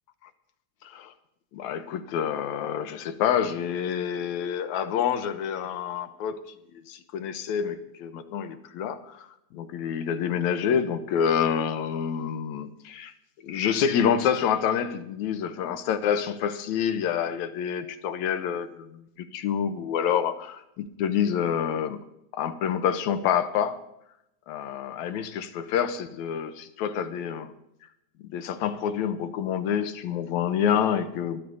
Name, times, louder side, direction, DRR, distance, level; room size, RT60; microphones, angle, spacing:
voice 1, 0.8-1.1 1.5-6.4 6.7-13.1 13.4-22.0 22.3-23.8 24.5-27.5 28.3-31.4, left 8 dB, 75° left, 10 dB, 2.1 m, -27 dB
24.5 x 13.5 x 2.7 m, 0.83 s
omnidirectional pair, 3.5 m